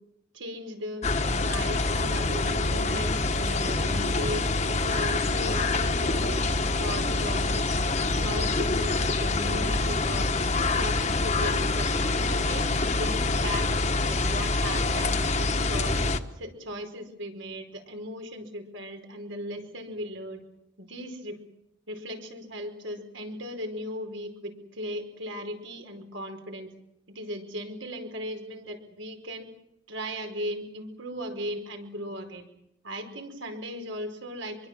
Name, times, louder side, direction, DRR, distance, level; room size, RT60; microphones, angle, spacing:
voice 1, 0.3-1.0 1.4-4.4 4.7-6.4 6.8-7.7 8.1-10.3 10.7-12.7 13.0-13.7 14.1-16.0 16.3-20.4 20.8-21.4 21.9-26.7 27.1-29.5 29.9-32.4 32.8-34.7, equal, 85° right, 5 dB, 5.0 m, -37 dB
sound 1, 1.0-16.2, left 3 dB, 35° left, 1.3 m, -26 dB
25.5 x 23.0 x 7.6 m, 0.80 s
head